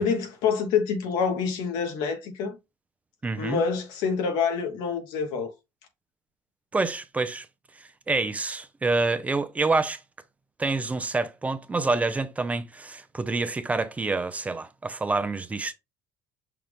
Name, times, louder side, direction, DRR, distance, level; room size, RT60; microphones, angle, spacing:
voice 1, 0.0-2.6 3.4-5.5, left 6 dB, 80° left, 1.2 m, -26 dB
voice 2, 3.2-3.6 6.7-7.5 8.1-10.0 10.6-15.7, right 3 dB, 20° right, 0.5 m, -27 dB
5.8 x 2.4 x 3.4 m
supercardioid pair, 95°, 8 cm